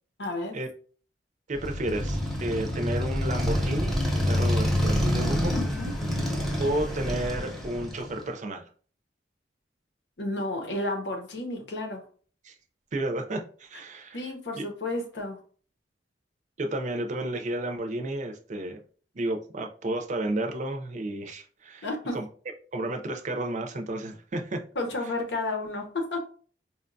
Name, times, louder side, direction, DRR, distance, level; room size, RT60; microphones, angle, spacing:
voice 1, 0.2-0.6 5.5-5.9 10.2-12.0 14.1-15.4 21.8-22.2 24.7-26.2, left 2 dB, 80° left, 3 dB, 0.8 m, -32 dB
voice 2, 1.5-5.6 6.6-8.6 12.4-12.5 12.9-14.2 14.6-14.7 16.6-18.8 19.1-21.9 22.1-22.2 22.7-24.6, right 1 dB, 45° right, 4 dB, 0.5 m, -32 dB
Motorcycle, 1.6-8.3, equal, ahead, 0.7 m, -27 dB
4.2 x 2.2 x 2.6 m, 0.43 s
head